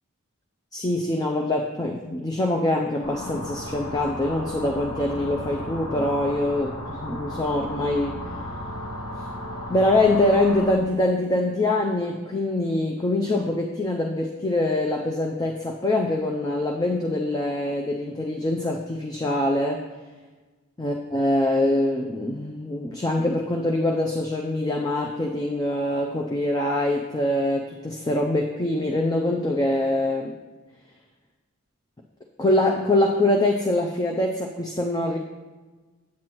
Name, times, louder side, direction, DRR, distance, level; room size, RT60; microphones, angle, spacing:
voice 1, 0.7-8.2 9.7-19.8 20.8-30.3 32.4-35.2, left 1 dB, 15° left, 1 dB, 0.4 m, -24 dB
sound 1, 3.0-10.7, equal, 80° left, 1.2 m, -34 dB
8.4 x 7.8 x 3.0 m, 1.3 s
head